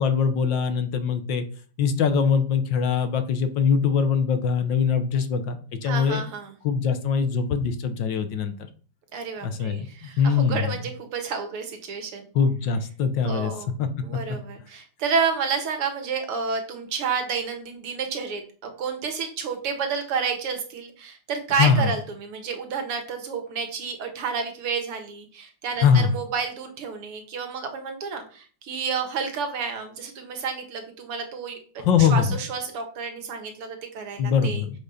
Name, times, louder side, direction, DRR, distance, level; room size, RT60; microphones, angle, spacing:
voice 1, 0.0-1.4 1.8-6.2 6.6-8.5 9.4-10.7 12.3-13.5 13.8-13.9 21.6-21.9 25.8-26.1 31.8-32.4 34.2-34.8, left 6 dB, 65° left, 9 dB, 1.6 m, -22 dB
voice 2, 5.8-6.6 9.1-12.3 13.2-34.6, right 5 dB, 80° right, 5 dB, 2.5 m, -30 dB
7.5 x 5.5 x 5.6 m, 0.41 s
omnidirectional pair, 2.4 m